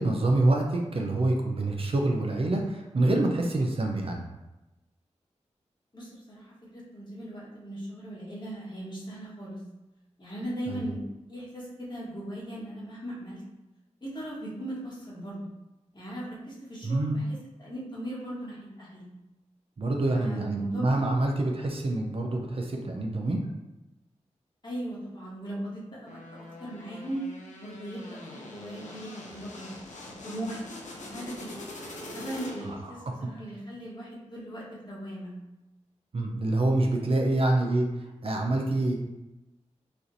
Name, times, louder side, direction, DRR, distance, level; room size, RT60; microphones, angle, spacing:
voice 1, 0.0-4.2 10.7-10.8 16.8-17.2 19.8-23.4 32.6-33.1 36.1-37.8 38.2-38.9, right 2 dB, 50° right, 1 dB, 0.6 m, -26 dB
voice 2, 5.9-6.5 6.7-9.6 10.2-11.0 11.3-13.4 14.0-15.5 15.9-19.1 20.1-21.0 24.6-26.2 26.6-27.2 27.6-29.7 30.2-30.6 31.0-31.5 31.8-35.3, right 1 dB, 40° left, -6 dB, 1.3 m, -38 dB
sound 1, 26.1-32.9, left 2 dB, 85° left, 0.6 m, -43 dB
4.3 x 2.5 x 2.6 m, 1.0 s
cardioid pair, 55°, 12 cm